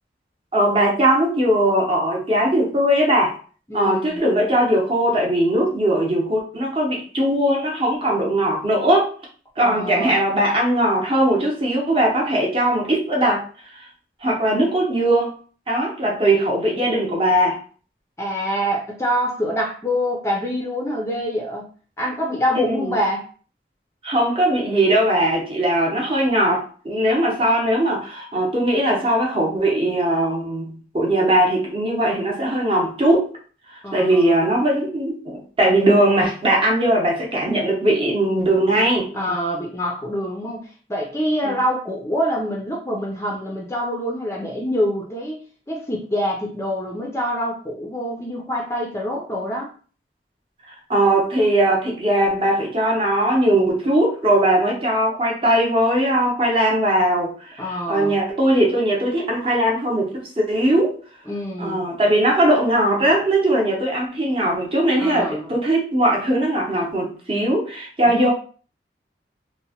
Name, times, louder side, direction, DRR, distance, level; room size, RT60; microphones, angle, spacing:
voice 1, 0.5-3.3 3.7-9.1 9.6-13.4 14.2-15.3 15.7-17.6 22.7-23.0 24.0-33.3 33.9-39.1 41.4-41.5 50.9-57.6 57.9-61.0 61.6-68.3, right 1 dB, 30° right, -2 dB, 0.7 m, -19 dB
voice 2, 3.7-4.2 9.6-10.2 18.2-21.7 22.0-23.2 33.8-34.3 39.1-49.7 57.6-58.2 61.3-61.8 65.0-65.5 68.1-68.3, equal, 15° left, -2 dB, 0.4 m, -25 dB
2.8 x 2.0 x 2.8 m, 0.41 s
head